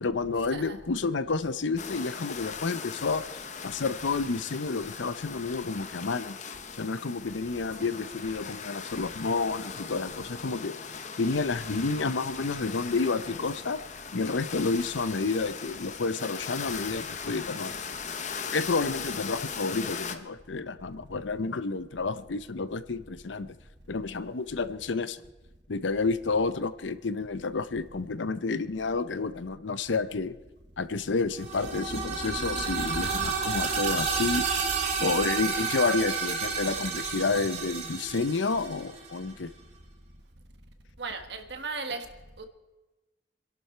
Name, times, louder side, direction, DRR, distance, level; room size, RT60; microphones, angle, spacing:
voice 1, 0.0-6.4 6.8-10.7 11.2-13.8 14.1-17.8 18.5-23.5 23.9-25.2 25.7-30.3 30.8-34.5 35.0-39.5, left 4 dB, 80° left, 14 dB, 0.7 m, -30 dB
sound 1, 1.8-20.2, left 6 dB, 40° left, 0.8 m, -39 dB
sound 2, 31.3-39.2, right 5 dB, 40° right, 2.0 m, -30 dB
voice 2, 41.0-42.0 42.4-42.5, right 4 dB, 65° right, 6 dB, 1.5 m, -36 dB
26.0 x 11.5 x 4.5 m, 1.1 s
head